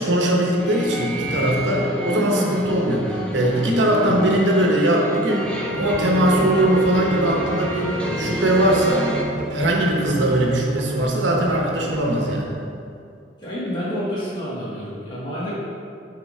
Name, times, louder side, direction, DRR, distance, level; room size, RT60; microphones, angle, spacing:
voice 1, 0.0-9.1 9.5-12.5, right 1 dB, 80° right, -1 dB, 1.0 m, -20 dB
sound 1, 0.6-9.2, equal, 5° left, 0.6 m, -28 dB
sound 2, 5.7-12.4, right 2 dB, 40° right, 0.4 m, -31 dB
voice 2, 13.4-15.5, equal, 25° left, -9 dB, 1.1 m, -29 dB
6.6 x 3.6 x 4.9 m, 2.4 s
head